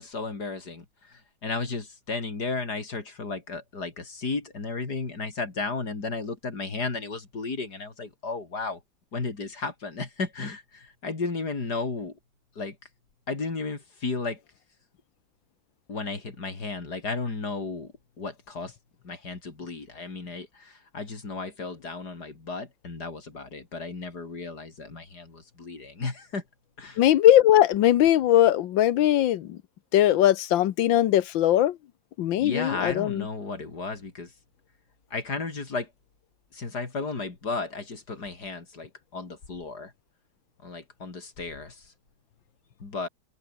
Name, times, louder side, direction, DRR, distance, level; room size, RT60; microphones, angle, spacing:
voice 1, 0.0-8.8 9.1-12.2 12.6-12.8 13.3-14.4 15.9-18.8 19.0-26.4 26.8-27.0 32.4-34.3 35.1-35.9 36.5-39.9 40.6-41.9 42.8-43.1, left 3 dB, 55° left, 4.0 m, -34 dB
voice 2, 27.0-29.6 29.9-31.8 32.2-33.3, left 12 dB, 85° left, 1.6 m, -20 dB
omnidirectional pair, 2.1 m